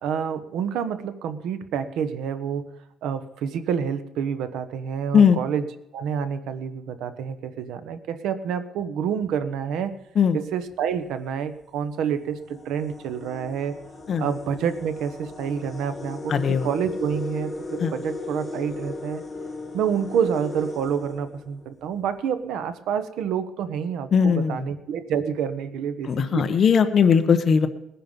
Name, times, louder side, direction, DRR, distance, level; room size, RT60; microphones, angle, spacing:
voice 1, 0.0-2.7 3.0-5.7 5.9-10.0 10.3-13.8 14.2-19.2 19.7-26.4, right 7 dB, 90° right, 12 dB, 1.1 m, -28 dB
sound 1, 10.7-10.8 11.6-11.7 12.1-21.9, left 3 dB, 10° left, 1.8 m, -37 dB
voice 2, 16.3-16.7 17.8-17.9 24.1-24.6 26.1-27.7, left 6 dB, 40° left, 7 dB, 1.1 m, -19 dB
19.5 x 10.0 x 5.4 m, 0.82 s
cardioid pair, 170°, 0 cm